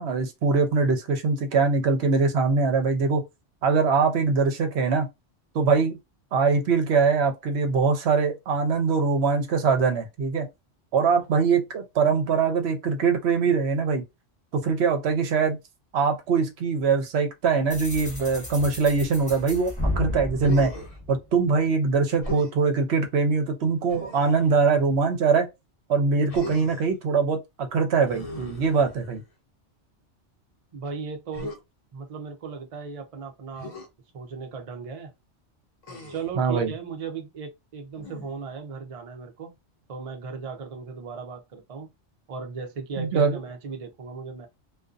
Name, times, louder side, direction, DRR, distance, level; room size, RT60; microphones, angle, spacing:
voice 1, 0.0-3.2 3.6-5.1 5.5-6.0 6.3-10.5 10.9-14.0 14.5-15.6 15.9-20.7 21.1-25.5 25.9-29.2 36.4-36.7 43.0-43.4, right 5 dB, 65° right, 0.9 m, -22 dB
sound 1, 17.7-21.6, left 1 dB, 5° left, 1.2 m, -33 dB
Human voice, 20.4-21.0 22.2-22.6 23.9-24.6 26.3-26.9 28.0-29.3 31.3-31.6 33.6-33.9 35.8-36.4 37.9-38.5, left 2 dB, 50° left, 0.4 m, -38 dB
voice 2, 30.7-31.5 31.9-33.7 34.1-35.1 36.1-39.6 39.9-41.9 42.3-44.5, right 5 dB, 50° right, 0.4 m, -36 dB
2.5 x 2.2 x 2.4 m
omnidirectional pair, 1.2 m